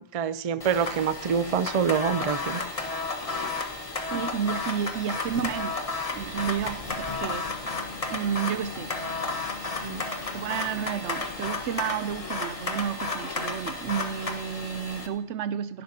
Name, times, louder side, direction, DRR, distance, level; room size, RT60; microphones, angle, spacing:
voice 1, 0.1-2.6 9.8-10.0, right 7 dB, 45° right, 0.5 m, -26 dB
sound 1, 0.6-15.1, left 3 dB, 30° left, 1.2 m, -33 dB
voice 2, 4.1-5.8 6.1-7.5 8.1-8.9 10.3-15.8, right 8 dB, 80° right, 0.9 m, -31 dB
sound 2, 5.3-5.7 6.2-11.4, left 3 dB, 55° left, 1.9 m, -43 dB
16.5 x 11.5 x 2.8 m
omnidirectional pair, 1.2 m